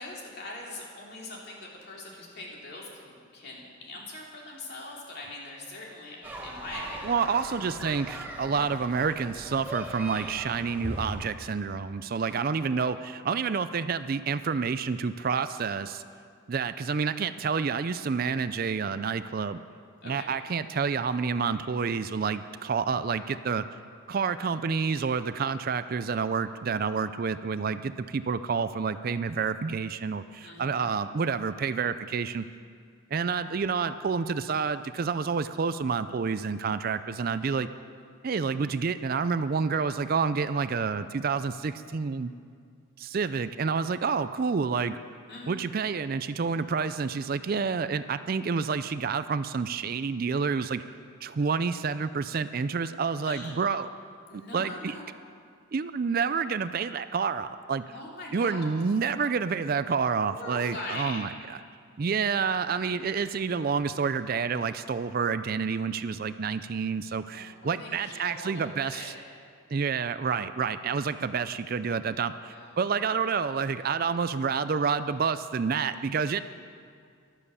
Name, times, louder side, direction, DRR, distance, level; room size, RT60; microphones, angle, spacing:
voice 1, 0.0-7.7 12.3-12.4 12.7-12.9 20.0-20.3 30.4-30.9 45.3-45.6 51.4-51.8 53.2-53.6 54.3-55.0 57.9-58.6 60.2-61.3 62.8-62.9 67.3-69.1 72.4-72.8, left 2 dB, 50° left, -3 dB, 3.1 m, -42 dB
sound 1, 6.2-11.3, right 1 dB, 10° right, 1.3 m, -39 dB
voice 2, 7.0-16.0 16.5-19.6 20.0-23.6 24.1-32.5 33.1-37.7 38.2-42.3 43.0-45.0 45.5-53.9 54.3-54.9 55.7-57.8 58.3-61.3 62.0-69.1 69.7-76.4, right 5 dB, 45° right, 13 dB, 0.4 m, -29 dB
13.5 x 12.0 x 7.0 m, 2.2 s
head